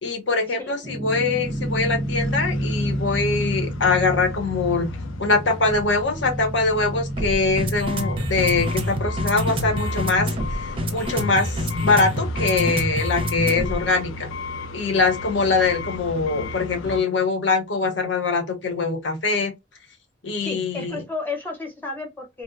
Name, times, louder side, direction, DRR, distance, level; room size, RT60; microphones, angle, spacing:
voice 1, 0.0-4.9 5.2-10.6 10.9-11.6 11.8-14.3 14.7-19.5 20.2-21.0, left 3 dB, 70° left, 0.8 m, -23 dB
sound 1, 0.8-13.9, equal, 25° right, 0.5 m, -27 dB
sound 2, 1.4-17.0, left 4 dB, 85° left, 0.3 m, -35 dB
voice 2, 20.4-22.4, left 3 dB, 10° left, 0.8 m, -32 dB
2.8 x 2.1 x 2.4 m
head